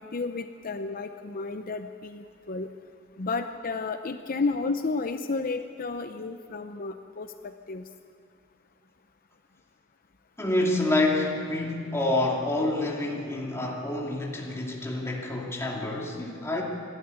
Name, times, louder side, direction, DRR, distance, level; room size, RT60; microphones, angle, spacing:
voice 1, 0.0-2.7 3.2-7.8, left 3 dB, 45° left, 8 dB, 0.7 m, -32 dB
voice 2, 10.4-16.6, left 2 dB, 15° left, -2 dB, 2.6 m, -27 dB
26.5 x 12.5 x 9.8 m, 2.4 s
head